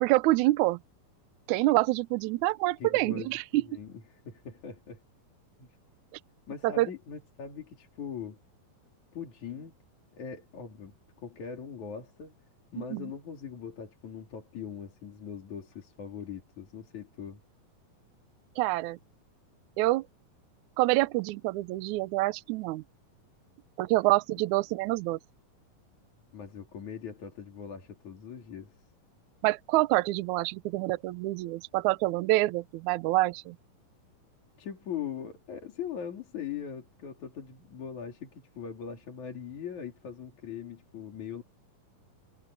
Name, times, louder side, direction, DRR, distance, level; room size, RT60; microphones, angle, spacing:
voice 1, 0.0-0.8 1.5-3.6 6.6-6.9 12.8-13.1 18.6-19.0 19.8-20.0 20.8-22.8 23.8-25.2 29.4-33.6, right 19 dB, 85° right, 1.7 m, -26 dB
voice 2, 2.8-5.0 5.6-5.8 6.5-8.4 9.1-9.7 10.2-12.3 12.7-17.4 26.3-28.8 34.6-41.4, left 7 dB, 55° left, 4.3 m, -41 dB
omnidirectional pair, 4.2 m